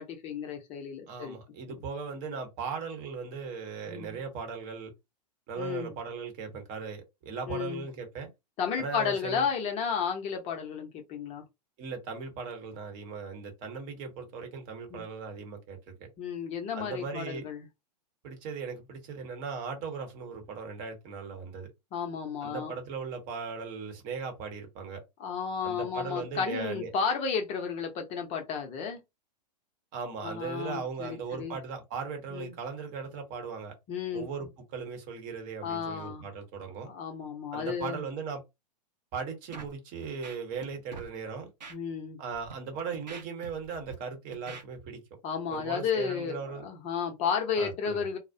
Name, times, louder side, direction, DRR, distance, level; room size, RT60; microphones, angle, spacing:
voice 1, 0.0-1.4 3.9-4.2 5.6-5.9 7.5-7.8 8.6-11.4 14.9-15.0 16.2-17.7 21.9-22.7 25.2-29.0 30.2-31.6 32.3-32.5 33.9-34.2 35.6-36.3 36.8-38.0 41.7-42.2 45.2-48.2, left 6 dB, 30° left, 0.6 m, -33 dB
voice 2, 1.1-4.9 5.5-8.3 8.8-9.5 11.8-16.1 16.7-17.5 18.2-21.7 22.4-25.0 25.6-26.9 29.9-33.7 34.1-36.9 37.5-38.4 39.1-41.5 42.2-45.0 45.5-46.7 47.6-48.1, right 5 dB, 40° right, 0.9 m, -38 dB
Scratching (performance technique), 39.5-39.7 40.0-40.7 40.9-41.1 41.6-41.8 42.3-42.5 42.9-44.0 44.3-44.6, right 4 dB, 85° right, 0.8 m, -44 dB
2.3 x 2.0 x 2.6 m
hypercardioid pair, 110°, 21 cm